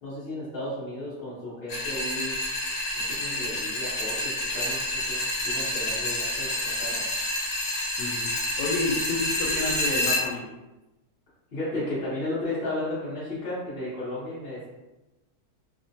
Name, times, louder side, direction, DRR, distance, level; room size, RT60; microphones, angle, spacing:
voice 1, 0.0-2.4 2.9-5.2 5.4-7.1 11.5-14.7, left 1 dB, 45° left, -10 dB, 0.8 m, -34 dB
sound 1, 1.7-10.2, left 1 dB, 70° left, 1.2 m, -28 dB
voice 2, 8.0-8.3 8.6-10.4, left 3 dB, 90° left, -6 dB, 1.2 m, -30 dB
3.0 x 2.1 x 2.6 m, 1.0 s
omnidirectional pair, 1.8 m